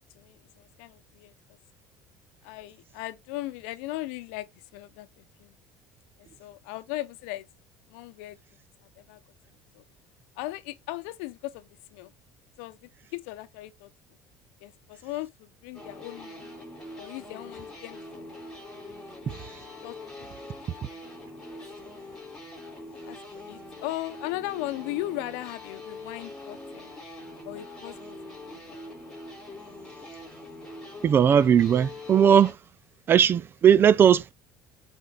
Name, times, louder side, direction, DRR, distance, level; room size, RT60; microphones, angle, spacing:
voice 1, 0.1-1.3 2.4-5.5 6.2-7.5 7.9-8.4 9.0-9.2 9.7-9.8 10.4-12.1 12.6-13.9 14.6-16.6 17.0-18.5 19.2-19.4 19.8-20.3 20.9-21.0 21.5-21.9 23.0-23.2 23.5-26.9 27.4-28.8, left 17 dB, 90° left, 0.7 m, -38 dB
sound 1, 15.7-32.5, left 2 dB, 10° left, 3.2 m, -43 dB
voice 2, 31.0-32.5 33.1-34.3, right 8 dB, 35° right, 0.4 m, -18 dB
11.5 x 4.4 x 2.4 m
cardioid pair, 120°, 6 cm